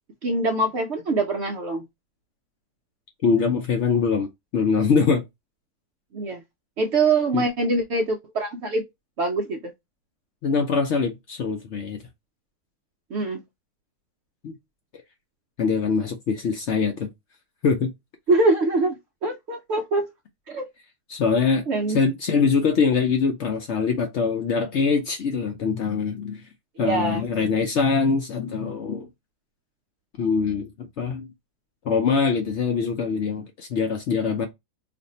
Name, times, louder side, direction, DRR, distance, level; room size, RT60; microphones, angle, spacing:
voice 1, 0.2-1.8 6.1-6.4 6.8-8.8 9.2-9.7 13.1-13.4 18.3-19.0 19.2-20.1 20.5-20.7 21.7-22.0 26.8-27.2, right 2 dB, 65° right, 0.7 m, -23 dB
voice 2, 3.2-4.3 4.5-5.2 7.3-7.4 10.4-12.0 14.4-14.5 15.6-17.1 17.6-17.9 21.1-26.4 26.8-29.1 30.2-31.3 31.8-34.5, left 5 dB, 65° left, 0.7 m, -23 dB
2.6 x 2.5 x 4.0 m
omnidirectional pair, 1.6 m